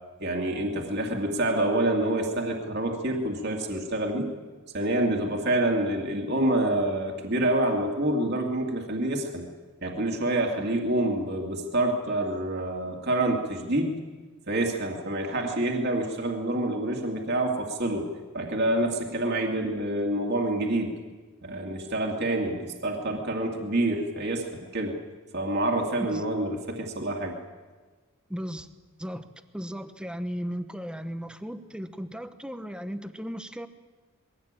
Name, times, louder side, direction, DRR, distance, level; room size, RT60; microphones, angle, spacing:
voice 1, 0.2-4.3 4.7-9.5 9.8-13.9 14.5-18.1 18.3-20.9 21.4-24.9 25.3-27.4, right 1 dB, 50° right, 1 dB, 2.4 m, -27 dB
voice 2, 28.3-28.7 29.0-29.3 29.5-33.7, equal, 5° right, 9 dB, 1.0 m, -36 dB
21.5 x 16.5 x 8.9 m, 1.4 s
head